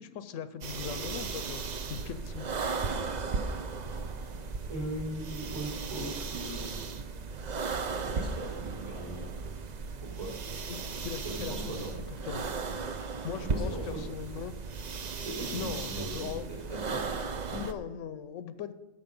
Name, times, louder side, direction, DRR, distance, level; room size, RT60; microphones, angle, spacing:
voice 1, 0.0-2.5 10.7-11.9 12.3-12.4 12.9-13.0 13.2-14.5 15.5-16.5 17.5-18.7, left 8 dB, 85° left, 12 dB, 1.0 m, -39 dB
sound 1, 0.6-17.7, right 4 dB, 45° right, 0.6 m, -36 dB
voice 2, 4.7-6.8 8.0-9.3 10.0-10.3 11.2-11.9 13.4-14.0 15.1-17.0, right 1 dB, 25° right, -3 dB, 4.1 m, -39 dB
13.5 x 5.3 x 5.3 m, 1.0 s
omnidirectional pair, 1.3 m